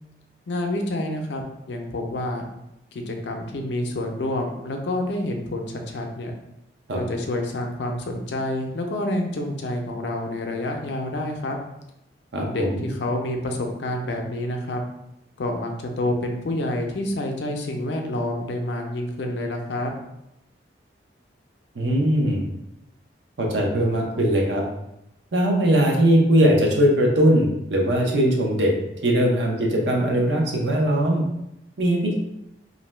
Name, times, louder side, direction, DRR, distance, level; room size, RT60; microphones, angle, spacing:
voice 1, 0.5-2.5 2.9-6.3 6.9-11.6 12.5-14.8 15.4-19.9, left 1 dB, 80° left, 3 dB, 0.5 m, -28 dB
voice 2, 12.3-12.9 21.8-22.4 23.4-24.6 25.3-28.7 29.0-31.2 31.8-32.2, right 1 dB, 85° right, 0 dB, 0.6 m, -20 dB
2.6 x 2.1 x 3.1 m, 0.84 s
head